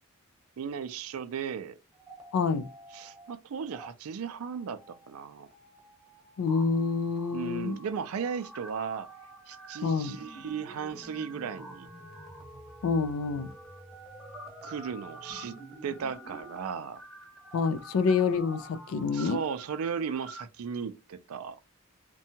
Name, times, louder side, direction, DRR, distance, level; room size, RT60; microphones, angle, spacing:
voice 1, 0.6-1.8 2.9-4.8 5.1-5.5 7.3-9.1 9.5-11.9 14.6-15.5 15.8-17.0 19.1-21.6, right 6 dB, 75° right, 0.4 m, -36 dB
sound 1, 1.9-3.3 3.6-3.9 4.4-20.4, right 1 dB, ahead, 0.8 m, -48 dB
voice 2, 2.3-2.7 6.4-7.8 9.8-10.2 12.8-13.5 17.5-19.4, left 5 dB, 65° left, 0.3 m, -27 dB
2.7 x 2.2 x 2.7 m
head